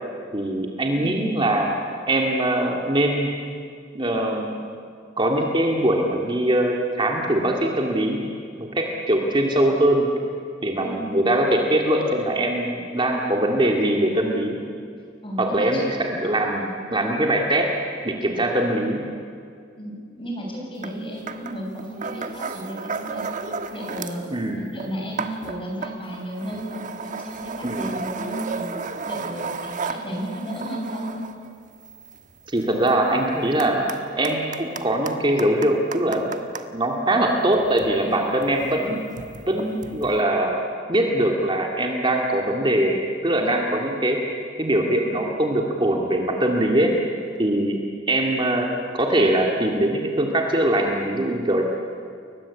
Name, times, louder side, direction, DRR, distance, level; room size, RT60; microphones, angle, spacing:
voice 1, 0.3-1.7 2.1-3.3 3.9-4.6 5.2-8.2 8.6-10.1 10.6-14.6 15.4-17.7 18.0-19.0 24.3-24.7 27.6-28.0 32.5-33.9 34.2-36.3 36.7-39.0 39.5-44.2 44.6-46.9 47.4-48.7 48.9-51.6, right 1 dB, 25° right, 1 dB, 2.4 m, -22 dB
voice 2, 1.0-1.4 10.8-11.3 15.2-15.7 19.8-23.3 23.7-24.2 24.5-28.7 29.0-31.2, equal, 25° left, -1 dB, 7.6 m, -33 dB
sound 1, 20.8-21.0 21.3-24.3 24.6-36.7 37.4-40.2, right 4 dB, 40° right, 1.4 m, -34 dB
30.0 x 22.5 x 8.5 m, 2.3 s
head